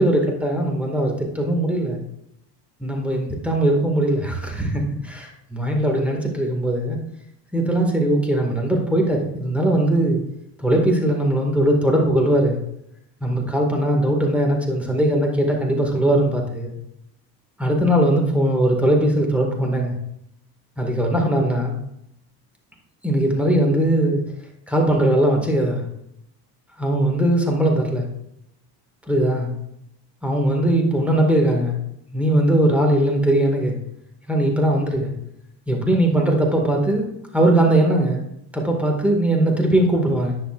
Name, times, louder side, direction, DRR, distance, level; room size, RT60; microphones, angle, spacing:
voice 1, 0.0-2.0 2.8-7.0 7.5-10.2 10.6-12.6 13.2-16.7 17.6-19.9 20.8-21.8 23.0-24.2 24.7-25.8 26.8-28.1 29.1-29.5 30.2-31.8 32.1-33.8 34.3-35.1 35.7-37.1 37.3-38.3 38.5-40.4, right 1 dB, 5° right, 0 dB, 1.9 m, -20 dB
9.9 x 6.4 x 2.5 m, 0.79 s
supercardioid pair, 75°, 49 cm